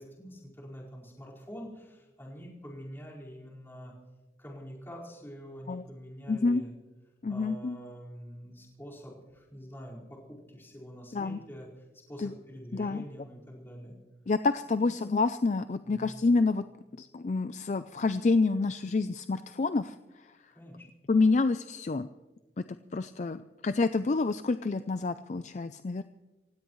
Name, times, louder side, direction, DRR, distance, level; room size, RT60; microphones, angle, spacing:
voice 1, 0.0-3.9 4.4-6.7 7.3-11.7 12.1-13.9 14.7-14.9 15.8-16.2 20.5-20.9, equal, 15° left, -5 dB, 4.7 m, -46 dB
voice 2, 6.3-6.6 7.2-7.8 11.1-11.4 12.2-12.3 12.7-13.0 14.3-16.6 17.0-20.3 21.1-22.1 22.9-26.0, left 3 dB, 40° left, 11 dB, 0.4 m, -28 dB
27.5 x 16.5 x 3.1 m, 1.2 s
head